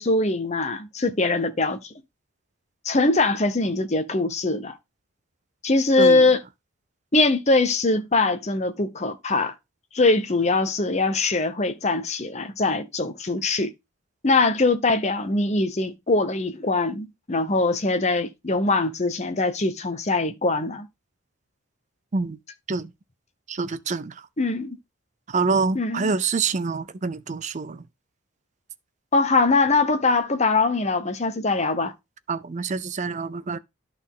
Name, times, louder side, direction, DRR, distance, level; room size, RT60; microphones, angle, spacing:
voice 1, 0.0-1.9 2.8-4.7 5.6-6.4 7.1-9.5 9.9-13.7 14.2-20.9 24.4-24.7 25.7-26.1 29.1-31.9, left 3 dB, 30° left, 0.9 m, -22 dB
voice 2, 23.5-24.1 25.3-27.8 32.3-33.6, right 4 dB, 35° right, 0.5 m, -26 dB
11.5 x 4.2 x 3.7 m
head